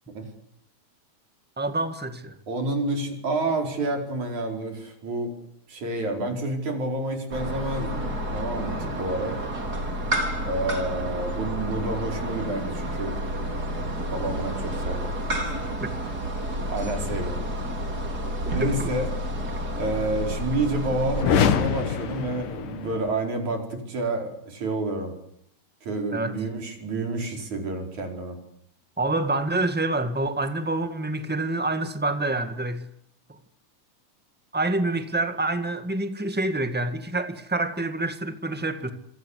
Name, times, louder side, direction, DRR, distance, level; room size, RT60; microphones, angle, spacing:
voice 1, 1.6-2.4 18.4-18.7 26.1-26.4 29.0-32.9 34.5-38.9, right 2 dB, 10° right, 0.6 m, -27 dB
voice 2, 2.5-5.3 5.7-9.4 10.4-13.2 14.1-15.1 16.7-17.5 18.5-19.1 19.8-25.1 25.8-28.4, right 2 dB, 65° right, 6.2 m, -29 dB
sound 1, 7.3-21.3, equal, 30° right, 4.1 m, -30 dB
sound 2, 21.1-23.2, left 7 dB, 80° left, 3.3 m, -24 dB
27.0 x 24.0 x 8.3 m
omnidirectional pair, 3.7 m